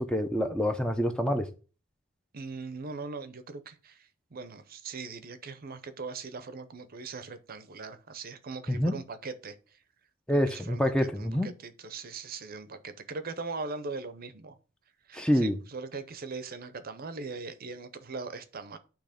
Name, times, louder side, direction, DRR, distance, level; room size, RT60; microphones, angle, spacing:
voice 1, 0.0-1.5 8.7-9.0 10.3-11.5 15.1-15.5, equal, 5° left, 0.5 m, -26 dB
voice 2, 2.3-9.5 10.3-14.6 15.1-18.8, right 4 dB, 45° right, 0.7 m, -40 dB
9.0 x 3.0 x 5.0 m
head